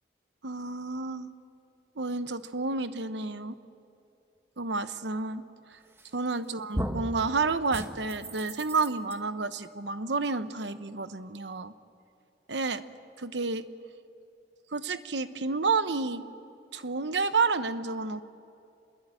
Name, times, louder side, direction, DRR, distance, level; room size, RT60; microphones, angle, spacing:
voice 1, 0.4-1.3 2.0-3.6 4.6-5.4 5.7-5.8 6.1-11.7 12.5-12.8 13.2-13.7 14.7-16.2 16.7-18.2, right 4 dB, 80° right, 11 dB, 1.0 m, -30 dB
sound 1, 6.0-6.4 6.7-7.2 7.7-9.1, right 1 dB, 15° right, 1.3 m, -35 dB
26.0 x 21.5 x 9.1 m, 2.6 s
head